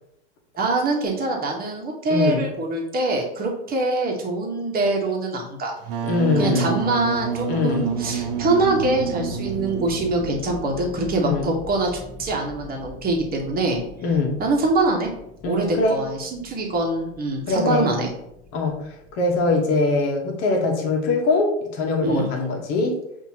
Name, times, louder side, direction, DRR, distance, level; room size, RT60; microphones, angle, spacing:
voice 1, 0.6-5.7 6.4-11.9 12.2-13.8 14.4-15.1 15.5-18.1 22.0-22.3, right 2 dB, 25° right, 0 dB, 1.2 m, -24 dB
voice 2, 2.1-2.4 6.0-6.8 7.5-7.9 11.2-11.5 14.0-14.3 15.4-16.0 17.5-17.9 18.5-18.9 19.2-23.0, left 3 dB, 50° left, 2 dB, 1.1 m, -22 dB
Wind instrument woodwind instrument, 5.8-10.4, right 7 dB, 60° right, 0.7 m, -28 dB
sound 1, 6.6-19.6, left 3 dB, 20° left, 0.9 m, -41 dB
5.7 x 2.7 x 2.8 m, 0.80 s
hypercardioid pair, 105°, 32 cm